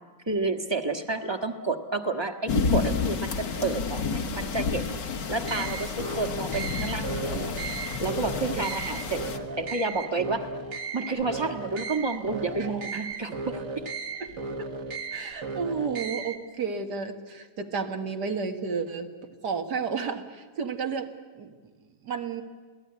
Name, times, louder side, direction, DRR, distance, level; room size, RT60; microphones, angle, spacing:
voice 1, 0.3-4.9 5.3-7.5 8.0-9.2 9.6-10.5 10.9-13.9, right 3 dB, 15° right, 5 dB, 1.4 m, -30 dB
sound 1, 2.5-9.4, left 5 dB, 80° left, 2.1 m, -30 dB
sound 2, 5.4-16.4, right 3 dB, 50° right, 1.7 m, -35 dB
voice 2, 15.1-19.1 19.4-21.1 21.4-21.5 22.0-22.4, right 5 dB, 70° right, 5 dB, 2.2 m, -32 dB
28.0 x 18.0 x 9.7 m, 1.4 s
omnidirectional pair, 1.8 m